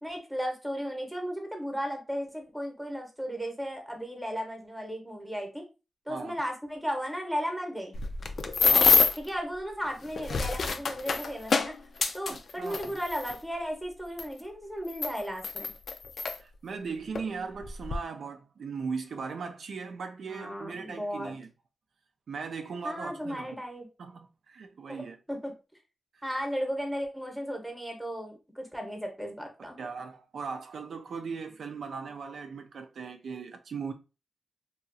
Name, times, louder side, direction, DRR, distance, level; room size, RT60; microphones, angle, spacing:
voice 1, 0.0-5.6 6.1-7.9 9.2-11.8 12.1-15.7 20.3-21.3 22.8-23.9 24.9-25.5 26.2-29.8, equal, ahead, 0.8 m, -35 dB
sound 1, 7.9-9.3 10.0-13.4 14.2-14.3 14.9-16.4 17.1-17.3 17.6-18.0, left 4 dB, 60° left, 0.4 m, -26 dB
voice 2, 8.7-9.2 12.3-12.9 16.4-21.5 22.3-23.6 24.0-25.2 26.1-26.2 29.8-33.9, right 5 dB, 75° right, 0.4 m, -38 dB
2.9 x 2.3 x 2.6 m
wide cardioid pair, 110°, 0 cm